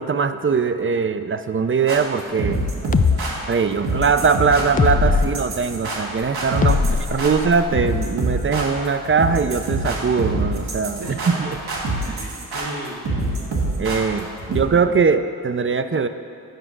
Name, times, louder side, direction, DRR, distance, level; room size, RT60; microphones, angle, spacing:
voice 1, 0.0-2.6 3.5-6.8 7.1-11.0 11.4-11.5 13.8-16.1, right 5 dB, 35° right, 10 dB, 0.5 m, -21 dB
sound 1, 1.9-14.6, right 2 dB, 85° right, 1.4 m, -26 dB
sound 2, 2.9-3.2 4.8-5.3 6.6-7.8, left 5 dB, 25° left, 0.3 m, -20 dB
voice 2, 6.6-7.4 11.0-11.8 12.1-13.0 14.4-14.6, right 2 dB, 65° right, 0 dB, 1.6 m, -36 dB
9.1 x 4.9 x 6.1 m, 2.4 s
cardioid pair, 40°, 37 cm